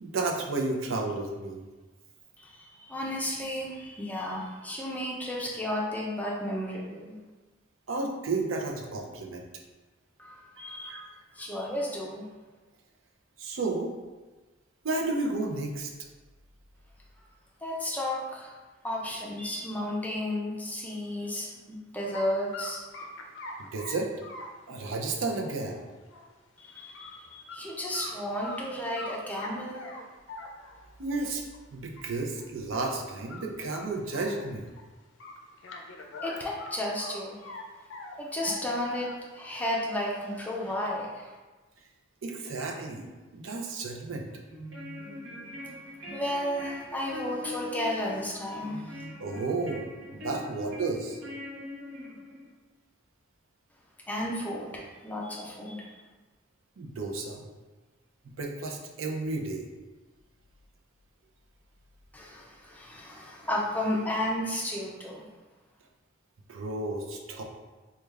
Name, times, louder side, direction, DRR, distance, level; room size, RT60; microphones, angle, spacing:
voice 1, 0.0-1.6 7.9-9.5 10.8-11.0 13.4-13.9 14.8-15.9 23.7-24.1 24.7-25.8 31.0-31.4 31.7-34.7 42.2-44.3 49.2-49.9 50.1-51.2 56.8-57.4 58.4-59.7 66.5-67.4, right 3 dB, 85° right, 1 dB, 0.5 m, -32 dB
voice 2, 2.4-7.2 10.2-11.0 11.4-12.2 17.6-18.5 18.8-22.8 26.6-29.8 36.2-37.6 38.2-41.4 46.1-49.0 54.1-55.8 62.1-65.3, left 1 dB, 10° left, -4 dB, 0.5 m, -33 dB
sound 1, 22.1-22.3 22.5-26.3 26.7-27.1 27.5-27.6 27.9-28.6 29.0-30.9 31.5-31.6 32.0-32.1 32.4-32.5 32.8-33.0 33.3-34.8 35.2-37.6 37.9-39.8 40.2-40.9, left 2 dB, 70° left, 0.4 m, -43 dB
sound 2, 44.5-52.5, left 1 dB, 65° right, 0.9 m, -42 dB
3.4 x 2.2 x 3.2 m, 1.2 s
head